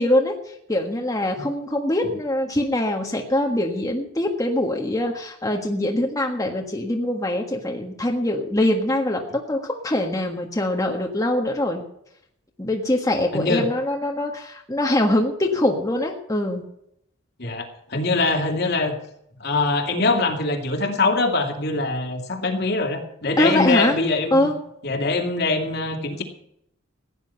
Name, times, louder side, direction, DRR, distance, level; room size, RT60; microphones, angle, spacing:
voice 1, 0.0-11.8 12.6-16.6 23.4-24.0 24.3-24.5, left 1 dB, 15° left, 1 dB, 1.5 m, -23 dB
voice 2, 13.3-13.7 17.4-19.0 19.4-24.5 24.8-26.2, left 3 dB, 55° left, 4 dB, 2.5 m, -23 dB
16.0 x 10.0 x 5.7 m, 0.75 s
head